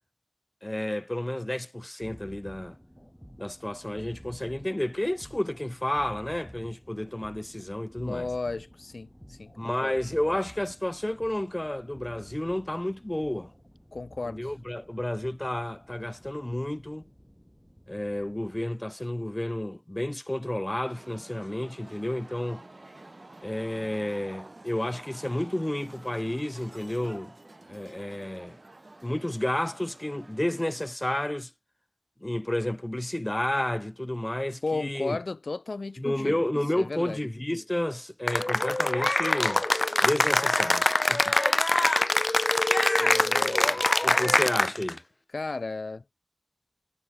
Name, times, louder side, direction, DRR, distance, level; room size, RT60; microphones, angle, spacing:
voice 1, 0.6-2.8 3.4-8.3 9.6-13.5 14.2-17.0 17.9-22.6 23.4-27.3 27.7-28.6 29.0-31.5 32.2-35.2 36.0-39.6 40.0-41.3 44.0-45.0, left 1 dB, 25° left, 1.5 m, -31 dB
sound 1, 2.0-18.6, equal, 5° left, 3.5 m, -51 dB
voice 2, 8.0-10.0 13.9-14.4 34.6-36.4 36.8-37.2 43.0-43.8 45.3-46.0, left 3 dB, 85° left, 0.5 m, -34 dB
sound 2, 20.9-31.0, right 2 dB, 50° right, 7.2 m, -49 dB
Cheering / Applause, 38.3-45.0, left 1 dB, 40° left, 0.5 m, -24 dB
wide cardioid pair, 45°, 0 cm